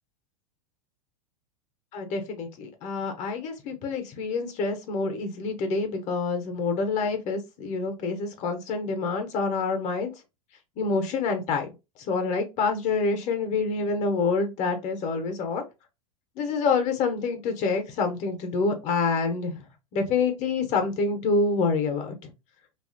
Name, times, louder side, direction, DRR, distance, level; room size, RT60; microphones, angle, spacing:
voice 1, 1.9-10.1 10.8-11.7 12.1-15.7 16.4-19.6 19.9-22.3, left 4 dB, 40° left, 0.7 m, -27 dB
2.7 x 2.3 x 2.5 m
hypercardioid pair, 100°, 18 cm